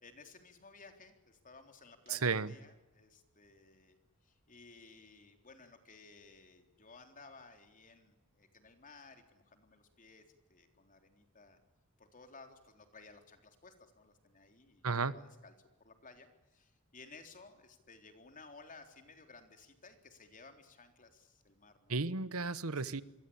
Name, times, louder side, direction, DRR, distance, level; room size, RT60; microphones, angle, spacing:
voice 1, 0.0-4.0 4.2-10.2 10.5-11.6 12.0-15.5 15.8-22.0 22.8-22.9, left 4 dB, 40° left, 6 dB, 3.6 m, -57 dB
voice 2, 2.1-2.5 14.8-15.1 21.9-23.0, right 4 dB, 75° right, 16 dB, 1.2 m, -33 dB
28.0 x 22.5 x 8.8 m, 0.98 s
head